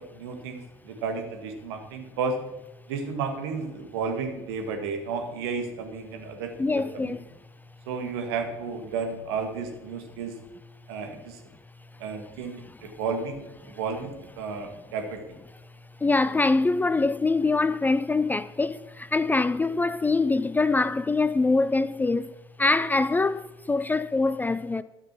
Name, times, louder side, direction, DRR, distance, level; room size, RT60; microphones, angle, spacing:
voice 1, 0.0-2.4 2.9-7.1 7.9-10.3 10.9-11.4 12.0-15.2, right 5 dB, 65° right, 1.8 m, -32 dB
voice 2, 6.6-7.2 16.0-24.8, left 3 dB, 15° left, 0.4 m, -24 dB
13.0 x 5.8 x 6.1 m
figure-of-eight pair, 60°, 14 cm